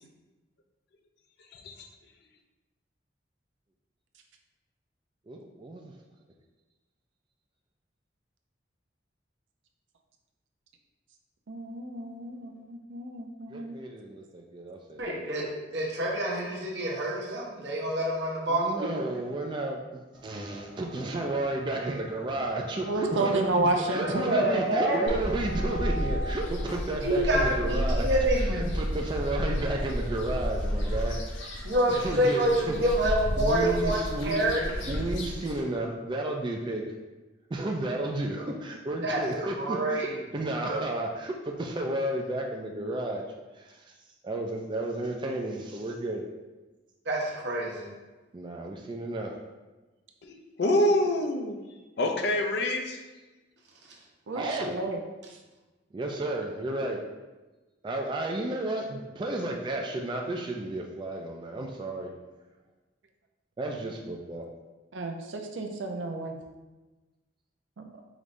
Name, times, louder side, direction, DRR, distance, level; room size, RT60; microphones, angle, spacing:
voice 1, 1.5-1.9 50.2-51.6 52.0-53.0, left 1 dB, 60° left, 3 dB, 0.5 m, -26 dB
voice 2, 5.3-5.9 13.5-15.2 18.5-28.1 28.4-31.2 31.4-31.6 31.9-32.8 33.4-34.5 34.9-36.9 37.5-40.1 40.3-43.2 43.5-43.9 44.2-46.2 48.3-49.3 54.3-54.7 55.9-57.0 57.8-62.1 63.6-64.5, right 2 dB, 25° right, 0 dB, 0.3 m, -32 dB
voice 3, 11.5-13.8 22.9-24.3 54.3-55.0 55.3-55.4 64.9-66.4 67.8-67.9, right 2 dB, 80° right, 4 dB, 0.5 m, -31 dB
voice 4, 15.0-18.9 24.3-25.1 27.0-28.8 31.6-34.8 39.0-39.2 39.6-40.2 47.1-47.9, right 1 dB, 65° right, -2 dB, 0.9 m, -27 dB
sound 1, 20.1-26.3, equal, 5° right, 0.7 m, -43 dB
sound 2, 25.1-35.6, equal, 90° left, 0.8 m, -31 dB
5.0 x 3.1 x 2.6 m, 1.2 s
head